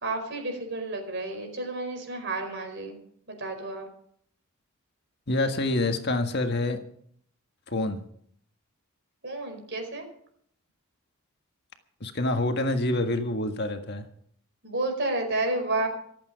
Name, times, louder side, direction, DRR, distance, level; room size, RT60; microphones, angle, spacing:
voice 1, 0.0-2.9 3.4-3.9 9.2-10.1 14.6-15.9, right 2 dB, 50° right, 4 dB, 4.9 m, -30 dB
voice 2, 5.3-6.8 7.7-8.0 12.0-14.0, left 2 dB, 50° left, 5 dB, 1.7 m, -27 dB
26.0 x 8.7 x 5.2 m, 0.63 s
head